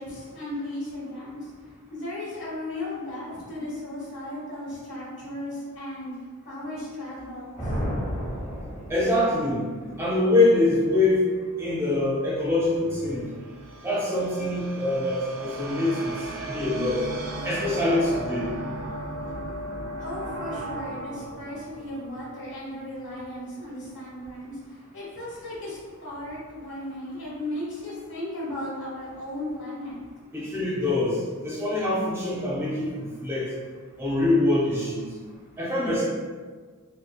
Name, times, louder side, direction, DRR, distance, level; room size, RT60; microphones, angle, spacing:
voice 1, 0.0-1.5 1.9-6.1 6.4-7.6 20.0-24.5 24.9-30.0, left 1 dB, 60° left, -7 dB, 1.3 m, -35 dB
sound 1, 7.6-9.5, equal, 25° left, 1.0 m, -31 dB
voice 2, 8.9-9.6 10.0-11.3 11.6-13.3 13.8-16.1 16.5-17.1 17.4-18.6 30.3-33.5 34.0-35.1 35.6-36.0, left 2 dB, 10° right, -5 dB, 0.5 m, -24 dB
sound 2, 12.7-23.0, right 1 dB, 60° right, 0.4 m, -36 dB
5.2 x 2.2 x 2.2 m, 1.5 s
head